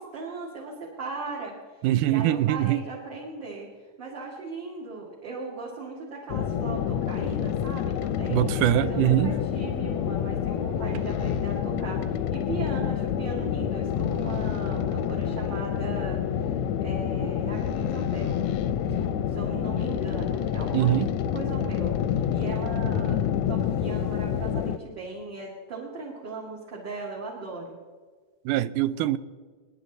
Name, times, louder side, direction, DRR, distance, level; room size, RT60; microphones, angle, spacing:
voice 1, 0.0-1.8 2.1-3.7 4.0-8.4 8.7-18.4 18.9-20.9 21.3-27.7, right 3 dB, 40° right, 2.5 m, -38 dB
voice 2, 1.8-2.8 8.3-9.3 20.7-21.1 28.5-29.2, right 15 dB, 90° right, 2.1 m, -23 dB
sound 1, 6.3-24.8, left 9 dB, 75° left, 1.8 m, -28 dB
27.0 x 10.0 x 4.0 m
omnidirectional pair, 3.6 m